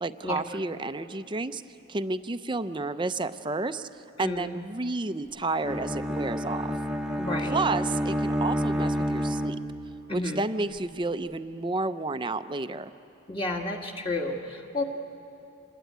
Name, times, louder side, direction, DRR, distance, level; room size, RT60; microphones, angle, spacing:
voice 1, 0.0-1.6 1.9-3.9 4.2-6.7 7.5-9.6 10.1-12.9, right 3 dB, 25° right, 11 dB, 0.6 m, -31 dB
voice 2, 4.2-4.5 7.2-7.6 10.1-10.4 13.3-14.8, left 2 dB, 25° left, 1 dB, 1.7 m, -31 dB
Bowed string instrument, 5.6-10.0, equal, 5° right, 0.9 m, -29 dB
26.0 x 21.0 x 9.3 m, 2.7 s
head